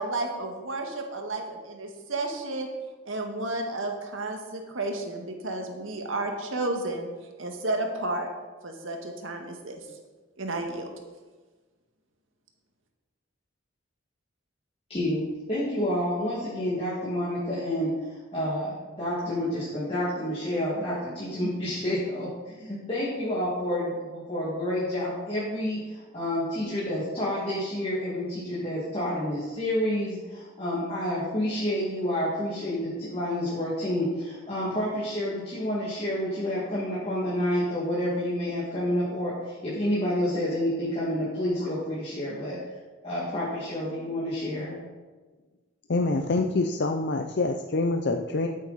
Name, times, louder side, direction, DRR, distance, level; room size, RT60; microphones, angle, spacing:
voice 1, 0.0-2.7 3.0-7.1 7.4-8.3 8.6-9.9 10.4-10.9, right 2 dB, 85° right, 3 dB, 1.8 m, -32 dB
voice 2, 14.9-15.2 15.5-42.8 43.0-44.8, left 1 dB, 30° left, -8 dB, 2.2 m, -29 dB
voice 3, 45.9-48.5, left 3 dB, 55° left, 5 dB, 0.6 m, -26 dB
13.0 x 8.5 x 4.1 m, 1.3 s
head